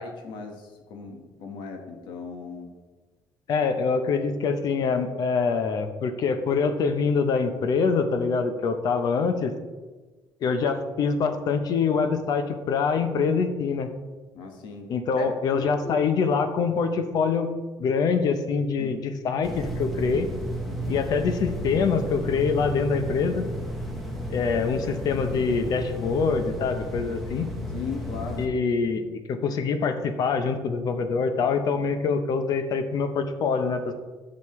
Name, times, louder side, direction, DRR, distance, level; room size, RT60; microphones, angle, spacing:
voice 1, 0.0-2.7 14.3-16.0 18.8-19.0 20.6-21.1 27.7-28.4, left 4 dB, 80° left, 4 dB, 1.5 m, -37 dB
voice 2, 3.5-9.5 10.4-13.9 14.9-17.5 17.8-20.3 20.9-23.5 24.3-27.5 28.4-34.0, left 5 dB, 55° left, 8 dB, 0.9 m, -25 dB
sound 1, 19.4-28.5, equal, ahead, 1.2 m, -33 dB
11.0 x 6.6 x 3.2 m, 1.3 s
cardioid pair, 145°, 8 cm